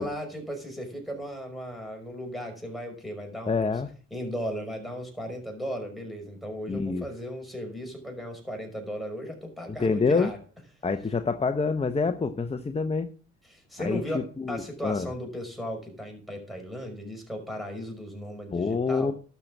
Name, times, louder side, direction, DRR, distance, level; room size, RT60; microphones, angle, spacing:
voice 1, 0.0-3.7 4.1-10.4 13.5-19.1, equal, ahead, 3 dB, 5.6 m, -36 dB
voice 2, 3.5-3.9 6.7-7.1 9.7-10.3 10.8-13.1 13.8-14.0 14.4-15.1 18.5-19.1, left 4 dB, 20° left, 10 dB, 0.9 m, -26 dB
12.0 x 6.8 x 7.2 m, 0.40 s
cardioid pair, 90°, 30 cm